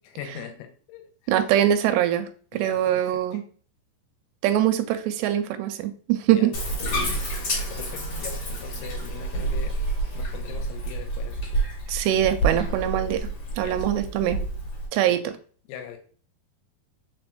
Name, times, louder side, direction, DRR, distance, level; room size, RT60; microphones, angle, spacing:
voice 1, 0.2-1.3 2.5-3.4 6.3-6.6 7.2-9.8 10.1-11.7 13.6-14.0 15.1-15.2 15.7-16.0, left 9 dB, 85° left, 5 dB, 2.8 m, -41 dB
voice 2, 1.3-3.4 4.4-6.5 11.9-13.3 13.6-14.4 14.9-15.3, right 11 dB, 85° right, 8 dB, 2.6 m, -23 dB
Bathtub (filling or washing), 6.5-14.9, right 2 dB, 50° left, 2.2 m, -29 dB
5.5 x 4.3 x 2.2 m, 0.43 s
omnidirectional pair, 4.8 m